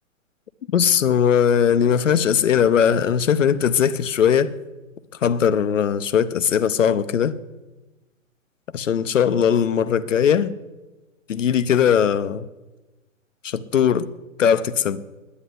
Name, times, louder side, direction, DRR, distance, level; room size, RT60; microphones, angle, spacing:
voice 1, 0.7-4.5 5.2-7.4 8.7-10.5 11.3-12.5 13.4-14.1 14.4-15.0, left 8 dB, 70° left, 0.8 m, -19 dB
10.0 x 9.7 x 9.9 m
figure-of-eight pair, 115°, 40 cm